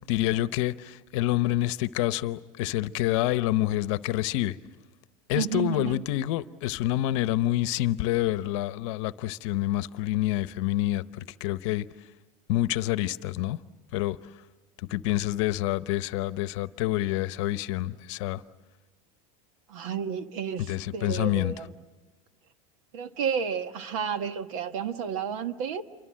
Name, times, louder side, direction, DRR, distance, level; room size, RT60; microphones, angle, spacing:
voice 1, 0.0-4.6 5.3-11.9 12.5-13.6 13.9-14.2 14.9-18.4 20.7-21.5, left 15 dB, 60° left, 0.9 m, -27 dB
voice 2, 5.3-6.0 19.7-21.7 22.9-25.8, right 7 dB, 70° right, 1.6 m, -31 dB
28.5 x 24.5 x 7.6 m
supercardioid pair, 165°, 18 cm